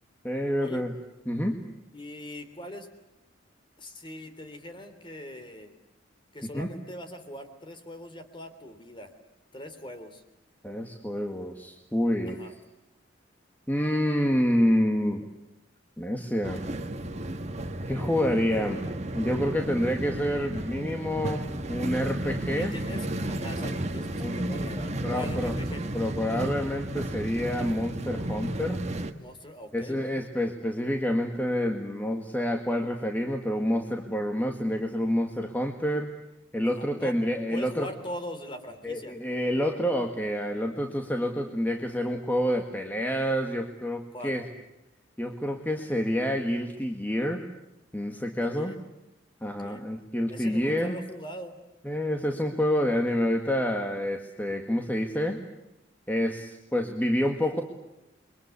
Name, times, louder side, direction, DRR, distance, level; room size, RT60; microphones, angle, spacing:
voice 1, 0.2-0.9 1.3-1.6 6.5-6.7 10.6-12.5 13.7-15.3 16.0-16.6 17.9-18.8 19.1-22.8 24.2-24.4 25.0-25.5 25.9-28.8 29.7-36.1 36.5-37.9 38.8-44.4 45.2-47.4 47.9-48.8 49.4-51.0 51.8-55.4 56.1-57.6, equal, 10° left, 3 dB, 1.8 m, -28 dB
voice 2, 1.9-2.9 3.8-5.7 6.3-9.1 9.5-10.2 12.3-12.5 22.6-25.8 29.2-30.2 36.6-37.2 37.5-39.2 44.1-44.4 48.4-48.8 49.4-49.8 50.3-51.6, left 1 dB, 25° left, 9 dB, 3.4 m, -41 dB
sound 1, 16.4-29.1, right 1 dB, 35° right, 1.6 m, -33 dB
29.5 x 23.0 x 8.5 m, 0.90 s
head